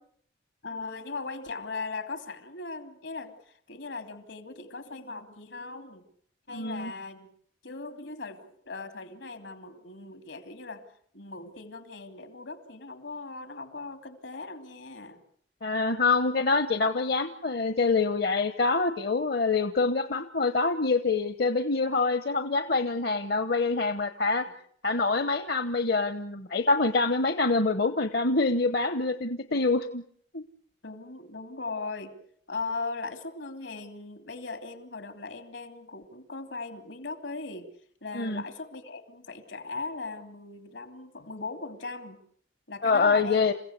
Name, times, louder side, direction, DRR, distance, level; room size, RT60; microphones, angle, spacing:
voice 1, 0.6-6.0 6.5-7.3 7.6-10.8 11.1-15.2 30.8-32.2 32.5-37.7 38.0-42.2 42.7-43.5, left 3 dB, 75° left, 8 dB, 2.9 m, -38 dB
voice 2, 6.5-6.9 15.6-24.5 24.8-30.0 30.3-30.4 38.1-38.4 42.8-43.5, left 3 dB, 55° left, 10 dB, 1.0 m, -25 dB
28.5 x 16.0 x 8.2 m, 0.64 s
head